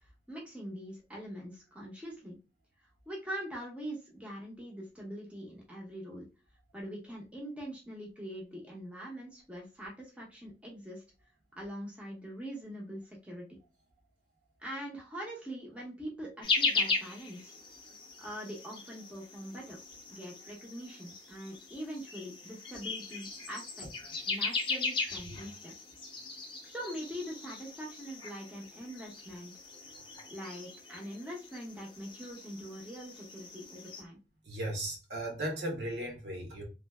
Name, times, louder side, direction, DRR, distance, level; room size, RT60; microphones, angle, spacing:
voice 1, 0.0-2.4 2.8-6.3 6.7-11.0 11.5-13.5 14.6-17.5 18.2-19.8 20.1-23.9 24.2-25.7 26.6-29.5 30.3-34.2, equal, 5° right, 0.8 m, -43 dB
sound 1, 16.4-34.0, left 4 dB, 30° left, 0.6 m, -38 dB
voice 2, 25.0-25.4 34.4-36.6, right 1 dB, 70° right, 1.2 m, -37 dB
3.1 x 2.5 x 2.2 m
head